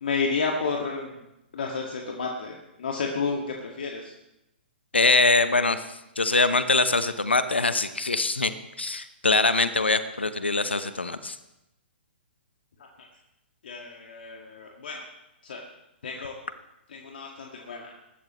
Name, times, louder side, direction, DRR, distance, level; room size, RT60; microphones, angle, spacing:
voice 1, 0.0-1.1 1.5-4.1 12.8-12.9 13.6-15.0 15.4-15.6 16.0-16.3 16.9-17.9, left 4 dB, 65° left, 0 dB, 2.0 m, -31 dB
voice 2, 4.9-8.5 8.8-11.4 16.2-16.3, left 3 dB, 90° left, 11 dB, 1.0 m, -23 dB
22.5 x 12.5 x 3.2 m, 0.88 s
figure-of-eight pair, 120°, 6 cm